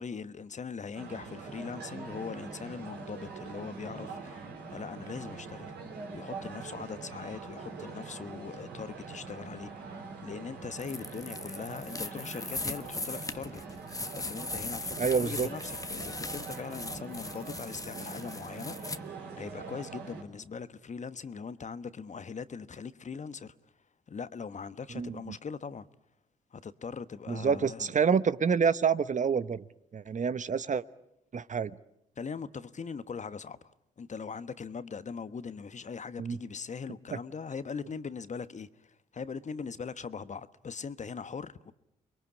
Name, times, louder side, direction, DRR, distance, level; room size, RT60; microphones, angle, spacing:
voice 1, 0.0-5.7 6.1-13.6 13.9-19.0 19.4-23.5 24.1-25.9 26.5-27.9 32.2-41.7, left 5 dB, 40° left, 1.2 m, -41 dB
sound 1, 0.9-20.2, right 4 dB, 75° right, 4.2 m, -43 dB
sound 2, 10.8-19.0, left 2 dB, 20° left, 1.2 m, -39 dB
voice 2, 15.0-15.5 24.9-25.4 27.3-29.6 29.9-30.8 31.3-31.7 36.2-36.4, right 6 dB, 45° right, 1.0 m, -27 dB
29.5 x 22.5 x 8.5 m
hypercardioid pair, 40°, 18 cm